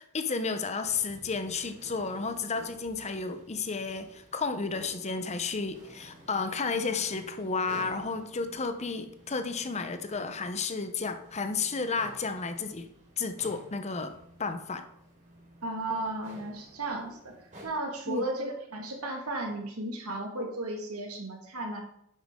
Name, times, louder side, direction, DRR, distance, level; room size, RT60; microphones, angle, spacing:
voice 1, 0.0-12.9 13.2-14.1 14.4-14.8 18.1-18.2, left 4 dB, 30° left, 9 dB, 0.7 m, -32 dB
sound 1, 0.8-17.7, equal, 35° right, 3.2 m, -53 dB
voice 2, 15.6-17.3 17.6-21.8, right 2 dB, 85° right, 2 dB, 1.9 m, -34 dB
9.7 x 7.8 x 3.7 m, 0.74 s
head